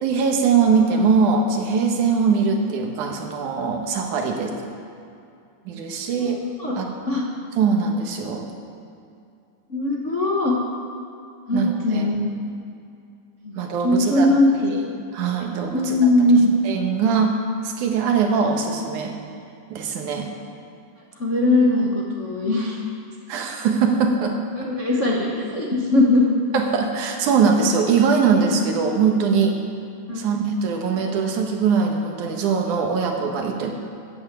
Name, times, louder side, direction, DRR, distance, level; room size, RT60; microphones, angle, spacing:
voice 1, 0.0-4.6 5.7-6.4 6.8-6.9 7.6-8.5 11.5-12.1 13.5-14.3 14.7-14.9 15.1-16.0 16.6-19.2 19.7-20.3 23.3-24.4 26.5-29.6 30.2-33.7, right 5 dB, 80° right, 2 dB, 2.8 m, -21 dB
voice 2, 6.1-6.8 7.1-7.2 9.7-10.5 11.5-12.2 13.4-14.7 15.7-16.6 21.2-22.8 24.6-26.2 30.1-30.2, left 1 dB, 50° left, -3 dB, 0.8 m, -20 dB
14.0 x 9.1 x 7.4 m, 2.5 s
omnidirectional pair, 3.5 m